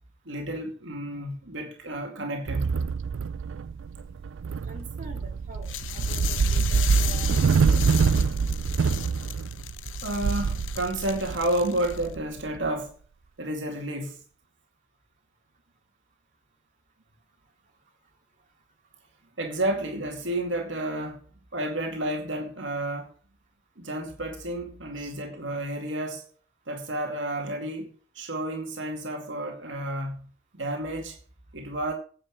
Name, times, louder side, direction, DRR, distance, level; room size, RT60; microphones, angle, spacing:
voice 1, 0.3-2.7 10.0-12.9 13.4-14.2 19.4-21.2 21.5-23.1 23.8-26.2 26.7-30.3 30.5-31.2 31.5-31.9, right 1 dB, 70° right, 2.3 m, -31 dB
sound 1, 2.5-12.7, right 5 dB, 90° right, 0.4 m, -25 dB
voice 2, 4.6-7.3 7.5-7.8 25.0-25.1, right 1 dB, 45° right, 2.8 m, -45 dB
sound 2, 5.6-12.1, left 13 dB, 85° left, 0.7 m, -37 dB
9.9 x 7.0 x 7.3 m
head